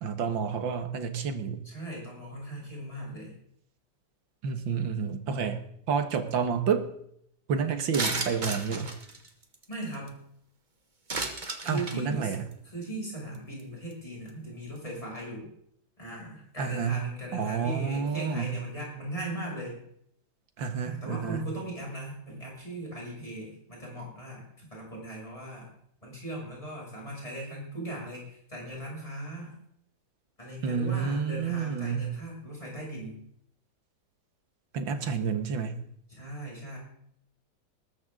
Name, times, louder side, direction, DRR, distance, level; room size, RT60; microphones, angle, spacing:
voice 1, 0.0-1.7 4.4-6.9 7.5-8.9 11.7-12.4 16.6-17.0 17.3-18.6 20.6-21.5 30.6-32.1 34.7-35.8, right 6 dB, 85° right, 8 dB, 2.2 m, -29 dB
voice 2, 1.6-3.3 9.7-10.2 11.6-12.3 12.6-15.5 16.0-19.8 20.8-25.7 26.0-29.5 30.4-33.2 34.9-35.1 36.1-36.8, right 1 dB, 15° left, -4 dB, 6.9 m, -38 dB
sound 1, 7.9-10.1 11.1-12.0 12.3-12.5 13.1-13.2 13.3-13.6 13.9-14.0, right 3 dB, 25° right, 1.4 m, -33 dB
20.5 x 12.5 x 3.8 m, 0.71 s
omnidirectional pair, 2.0 m